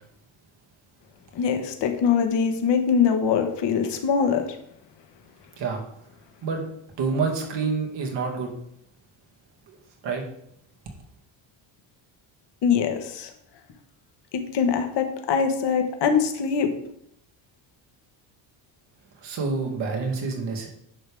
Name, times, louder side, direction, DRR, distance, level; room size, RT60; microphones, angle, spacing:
voice 1, 1.3-4.6 12.6-13.3 14.3-16.7, left 6 dB, 60° left, 6 dB, 1.4 m, -23 dB
voice 2, 7.0-8.5 9.7-9.8 10.0-10.2 19.2-20.7, right 4 dB, 60° right, 1 dB, 2.3 m, -27 dB
10.0 x 6.6 x 3.6 m, 0.72 s
cardioid pair, 135°, 47 cm